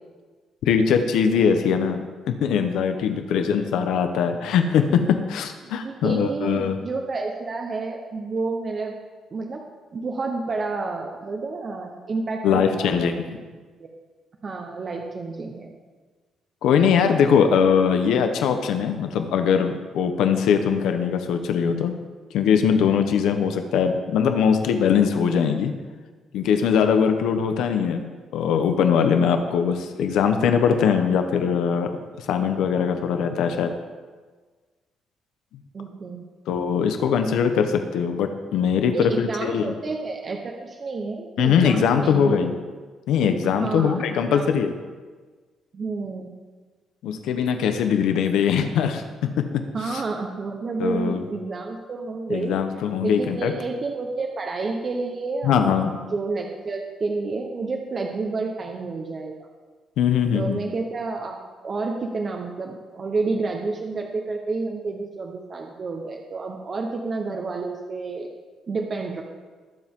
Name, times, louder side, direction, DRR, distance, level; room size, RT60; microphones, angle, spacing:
voice 1, 0.6-2.0 2.3-6.8 12.4-13.4 16.6-22.0 22.3-25.7 26.3-31.9 32.2-33.7 36.5-39.7 41.4-42.6 43.1-44.7 47.0-49.5 49.9-50.0 50.8-51.2 52.3-53.5 55.4-55.9 60.0-60.6, left 7 dB, 90° left, 7 dB, 1.0 m, -21 dB
voice 2, 5.6-8.9 9.3-9.6 9.9-13.1 14.4-15.7 35.7-36.2 38.9-42.3 43.6-44.0 44.3-44.4 45.7-46.3 49.7-52.6 53.0-59.3 60.3-68.3 68.7-69.2, right 3 dB, 30° right, 2 dB, 1.0 m, -30 dB
20.5 x 7.5 x 3.7 m, 1.4 s
cardioid pair, 155°, 0 cm